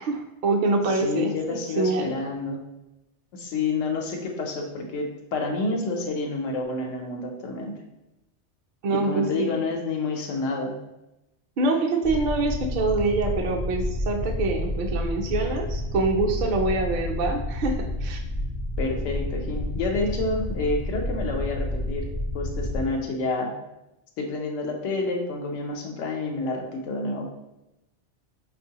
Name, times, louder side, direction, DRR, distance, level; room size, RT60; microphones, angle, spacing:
voice 1, 0.0-2.1 8.8-9.6 11.6-18.2, right 3 dB, 60° right, 2 dB, 0.5 m, -25 dB
voice 2, 0.9-2.6 3.3-7.7 8.9-10.8 18.8-23.5 24.2-27.3, left 3 dB, 90° left, 1 dB, 0.9 m, -29 dB
sound 1, 12.0-22.9, left 1 dB, 55° left, 0.4 m, -30 dB
4.4 x 2.4 x 2.7 m, 0.92 s
omnidirectional pair, 1.2 m